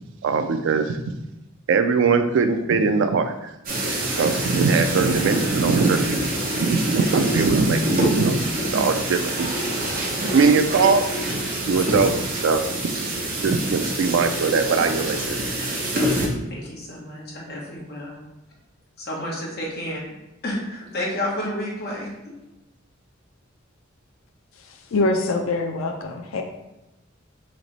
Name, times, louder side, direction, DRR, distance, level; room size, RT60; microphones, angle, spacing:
voice 1, 0.2-1.0 1.7-3.5 4.2-6.3 6.6-8.4 8.7-9.5 10.3-11.2 11.7-12.1 12.4-12.6 13.4-15.4, right 4 dB, 65° right, 8 dB, 0.4 m, -21 dB
sound 1, 3.7-16.3, right 1 dB, 45° right, 0.9 m, -26 dB
voice 2, 15.9-18.2 19.0-20.0 20.4-22.1, left 1 dB, 55° left, -3 dB, 1.2 m, -31 dB
voice 3, 24.7-26.4, left 2 dB, 75° left, 4 dB, 0.5 m, -24 dB
3.2 x 2.9 x 4.0 m, 0.94 s
head